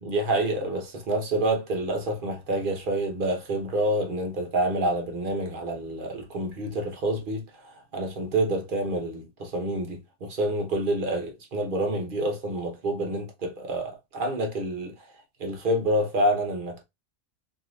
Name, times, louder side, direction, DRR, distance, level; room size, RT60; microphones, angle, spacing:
voice 1, 0.0-14.9 15.4-16.8, right 1 dB, 50° right, 0.7 m, -28 dB
3.0 x 2.7 x 2.5 m
omnidirectional pair, 1.5 m